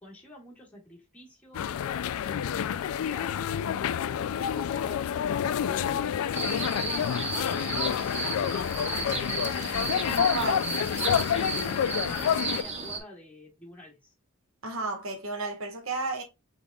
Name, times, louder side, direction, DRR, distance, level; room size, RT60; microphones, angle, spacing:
voice 1, 0.0-10.4 11.5-14.1, left 1 dB, 5° left, 1.7 m, -50 dB
sound 1, 1.5-12.6, left 9 dB, 70° left, 0.3 m, -28 dB
sound 2, 6.3-13.0, right 4 dB, 30° right, 0.8 m, -34 dB
voice 2, 10.1-10.7 14.6-16.2, right 3 dB, 65° right, 1.4 m, -32 dB
5.2 x 3.7 x 2.3 m
head